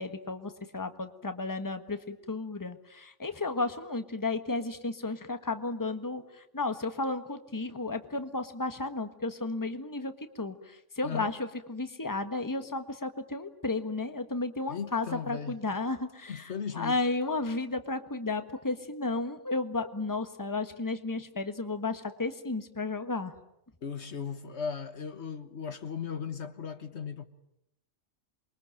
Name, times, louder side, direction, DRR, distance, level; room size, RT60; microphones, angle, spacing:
voice 1, 0.0-10.1 10.4-23.3, left 3 dB, 15° left, 1.5 m, -33 dB
voice 2, 14.7-15.6 16.3-17.0 23.8-27.2, left 6 dB, 65° left, 1.5 m, -37 dB
28.5 x 23.0 x 9.1 m
omnidirectional pair, 1.2 m